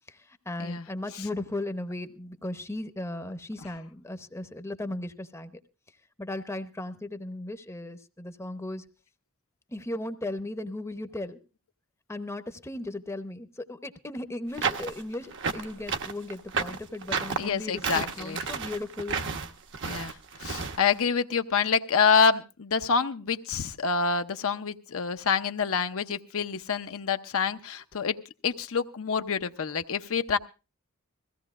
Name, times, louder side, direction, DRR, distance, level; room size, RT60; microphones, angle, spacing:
voice 1, 0.1-5.5 6.2-8.8 9.7-11.4 12.1-17.8 18.2-19.2, left 1 dB, 10° left, 9 dB, 0.8 m, -36 dB
sound 1, 14.5-20.8, right 5 dB, 55° right, 1.0 m, -31 dB
voice 2, 17.4-18.4 19.9-28.2 28.4-30.4, left 6 dB, 65° left, 8 dB, 0.7 m, -27 dB
22.0 x 16.0 x 2.4 m, 0.31 s
head